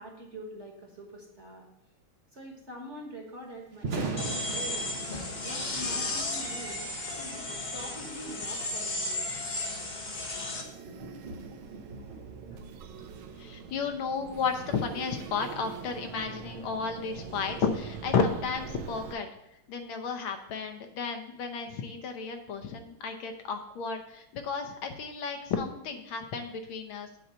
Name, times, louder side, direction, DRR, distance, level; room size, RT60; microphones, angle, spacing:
voice 1, 0.0-1.6 2.3-4.9 5.4-6.8 7.2-9.3, equal, 35° right, 0 dB, 1.4 m, -44 dB
Thunder, 3.7-17.8, right 3 dB, 55° right, 0.7 m, -43 dB
sound 1, 4.2-10.6, left 2 dB, 45° left, 0.5 m, -34 dB
sound 2, 10.6-19.2, right 6 dB, 75° right, 1.5 m, -44 dB
voice 2, 13.4-19.3 19.7-27.1, left 5 dB, 75° left, 6 dB, 1.5 m, -33 dB
8.8 x 3.9 x 6.7 m, 0.80 s
omnidirectional pair, 2.4 m